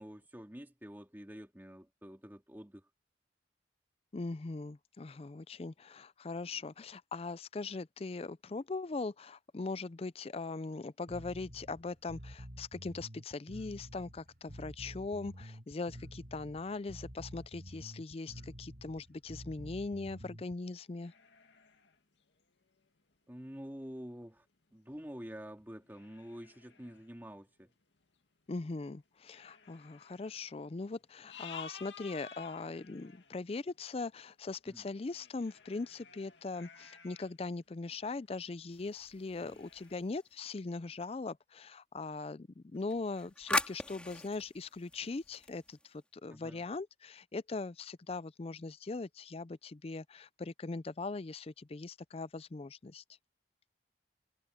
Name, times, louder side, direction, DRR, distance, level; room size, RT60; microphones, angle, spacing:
voice 1, 0.0-2.8 23.3-24.4 24.7-27.7 34.7-34.9 39.4-39.6 46.3-46.6, equal, 10° right, 2.0 m, -48 dB
voice 2, 4.1-21.1 28.5-53.0, left 3 dB, 35° left, 0.4 m, -40 dB
Bass guitar, 11.1-20.5, equal, 55° right, 7.5 m, -49 dB
sound 1, 20.9-23.0 23.8-23.9 24.4-24.5 25.2-25.4 25.8-27.1 28.0-28.1 28.5-28.6 29.3-30.5 31.0-33.4 34.5-37.4 37.7-38.4 38.7-38.8 39.4-39.9, left 6 dB, 80° left, 2.1 m, -53 dB
sound 2, 38.7-40.5 42.7-46.0, left 1 dB, 5° left, 2.8 m, -40 dB
head